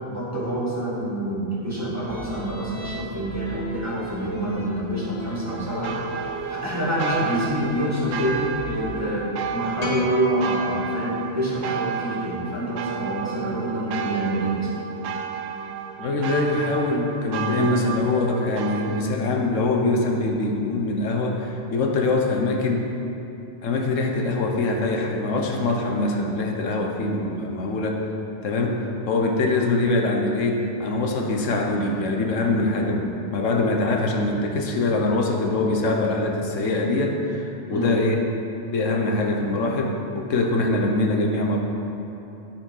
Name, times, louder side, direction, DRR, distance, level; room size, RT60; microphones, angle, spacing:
voice 1, 0.1-14.7 17.5-17.7 37.7-38.0, right 1 dB, 15° right, -7 dB, 2.0 m, -27 dB
sound 1, 2.1-8.8, right 1 dB, 40° right, 1.9 m, -38 dB
sound 2, 5.5-19.0, right 7 dB, 65° right, 0.8 m, -32 dB
sound 3, 9.8-12.2, left 2 dB, 35° left, 1.1 m, -30 dB
voice 2, 16.0-22.9 23.6-28.0 28.4-38.2 38.7-41.6, left 2 dB, 85° left, 1 dB, 1.3 m, -23 dB
12.0 x 4.4 x 5.4 m, 2.9 s
omnidirectional pair, 1.3 m